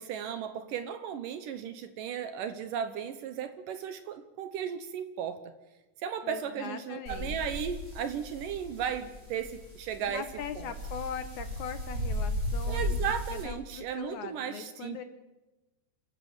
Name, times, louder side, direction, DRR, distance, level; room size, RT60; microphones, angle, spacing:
voice 1, 0.0-5.5 6.0-10.3 10.6-10.7 12.7-15.0, right 8 dB, 70° right, 10 dB, 2.2 m, -35 dB
voice 2, 6.2-7.4 10.0-15.0, left 7 dB, 70° left, 10 dB, 1.9 m, -41 dB
sound 1, 7.1-13.4, left 1 dB, 25° right, 8.6 m, -36 dB
28.0 x 14.0 x 7.3 m, 1.1 s
omnidirectional pair, 4.8 m